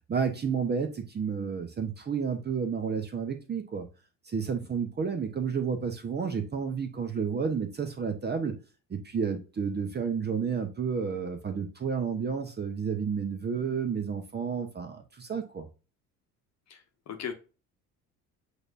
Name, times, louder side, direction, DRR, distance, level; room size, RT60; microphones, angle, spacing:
voice 1, 0.1-3.9 4.3-8.5 8.9-15.7, right 6 dB, 20° right, 0.8 m, -31 dB
voice 2, 16.7-17.3, left 8 dB, 35° left, 1.1 m, -38 dB
7.9 x 2.6 x 2.6 m
figure-of-eight pair, 60°, 46 cm